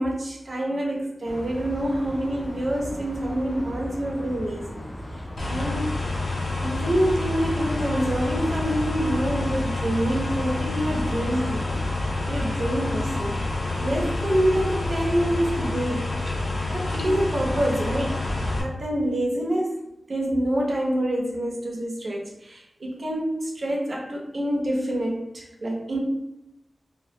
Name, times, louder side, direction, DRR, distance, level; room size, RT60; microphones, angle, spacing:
voice 1, 0.0-4.8 5.5-5.9 6.6-11.8 12.3-13.4 13.8-16.1 16.7-18.3 18.5-19.8 20.1-26.0, right 1 dB, 60° right, -2 dB, 0.6 m, -26 dB
sound 1, 1.2-15.4, equal, 30° left, 0.4 m, -37 dB
sound 2, 5.4-18.6, left 2 dB, 80° left, 0.5 m, -28 dB
2.2 x 2.0 x 2.7 m, 0.89 s
wide cardioid pair, 100°, 0 cm